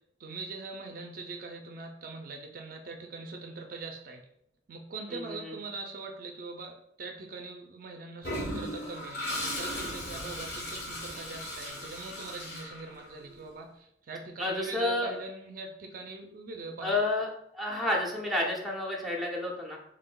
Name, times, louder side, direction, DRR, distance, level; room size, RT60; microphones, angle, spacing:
voice 1, 0.2-4.2 4.7-17.1, right 3 dB, 50° right, 3 dB, 0.4 m, -42 dB
voice 2, 5.1-5.5 14.4-15.1 16.8-17.3 17.5-19.8, left 2 dB, ahead, -1 dB, 0.6 m, -30 dB
Toilet flush, 8.2-13.3, left 1 dB, 60° left, 1.2 m, -37 dB
3.7 x 3.5 x 2.2 m, 0.75 s
head